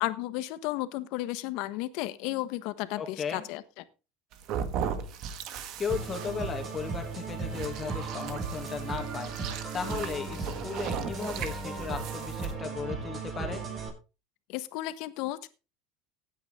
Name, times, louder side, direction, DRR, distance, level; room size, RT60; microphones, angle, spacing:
voice 1, 0.0-3.8 14.5-15.5, left 16 dB, 65° left, 13 dB, 1.3 m, -33 dB
voice 2, 3.0-3.4 5.8-9.3 9.7-13.6, left 6 dB, 25° left, 4 dB, 2.5 m, -36 dB
sound 1, 4.3-12.5, right 8 dB, 55° right, 1.8 m, -38 dB
sound 2, 5.9-13.9, right 4 dB, 35° right, 7.0 m, -36 dB
16.5 x 9.3 x 3.7 m, 0.31 s
supercardioid pair, 120°, 0 cm